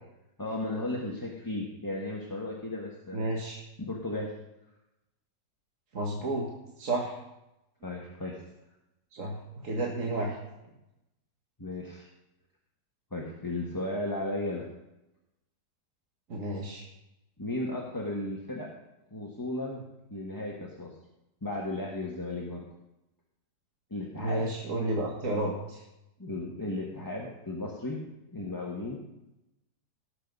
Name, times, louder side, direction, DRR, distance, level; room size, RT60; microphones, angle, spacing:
voice 1, 0.4-3.3 3.8-4.3 7.8-8.4 11.6-12.1 13.1-14.7 17.4-18.7 19.1-19.8 20.1-20.9 21.4-22.7 23.9-24.5 26.2-28.0 28.3-29.0, left 2 dB, 10° left, -2 dB, 1.3 m, -35 dB
voice 2, 3.1-3.6 5.9-6.5 6.8-7.2 9.1-10.4 16.3-16.9 24.2-25.8, right 2 dB, 45° right, -1 dB, 1.8 m, -31 dB
18.0 x 6.7 x 5.4 m, 0.91 s
omnidirectional pair, 1.9 m